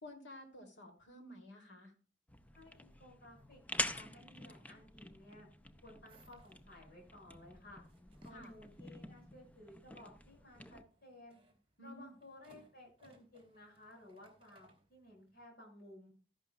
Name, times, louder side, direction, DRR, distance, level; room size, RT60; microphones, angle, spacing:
voice 1, 0.0-1.9 8.3-8.5 11.8-12.1, left 1 dB, 75° left, 3 dB, 2.8 m, -52 dB
sound 1, 2.3-10.8, left 1 dB, 10° left, 0.5 m, -46 dB
voice 2, 2.5-5.5 5.8-7.8 8.2-11.4 11.8-16.1, left 1 dB, 55° left, 0 dB, 6.0 m, -57 dB
sound 2, 6.1-15.4, right 1 dB, 30° right, 2.6 m, -69 dB
13.5 x 11.5 x 2.3 m, 0.37 s
head